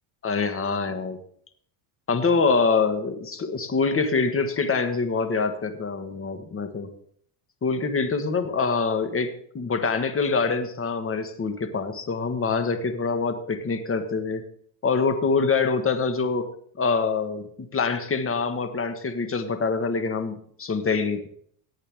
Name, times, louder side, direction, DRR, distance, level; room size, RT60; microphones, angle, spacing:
voice 1, 0.2-1.2 2.1-6.9 7.6-14.4 14.8-16.4 16.8-21.3, left 4 dB, 25° left, 8 dB, 1.6 m, -25 dB
17.5 x 8.3 x 3.7 m, 0.63 s
supercardioid pair, 100°, 50 cm